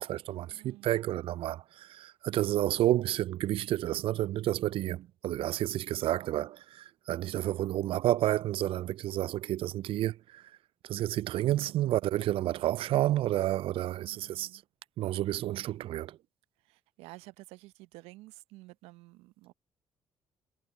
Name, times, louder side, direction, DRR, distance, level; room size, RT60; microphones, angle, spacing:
voice 1, 0.0-10.4 10.8-14.6 15.0-16.2, right 14 dB, 60° right, 0.4 m, -30 dB
voice 2, 0.5-1.1 7.2-7.8 11.5-12.1 14.0-14.6 16.6-19.5, right 20 dB, 75° right, 0.8 m, -52 dB
hypercardioid pair, 50°, 11 cm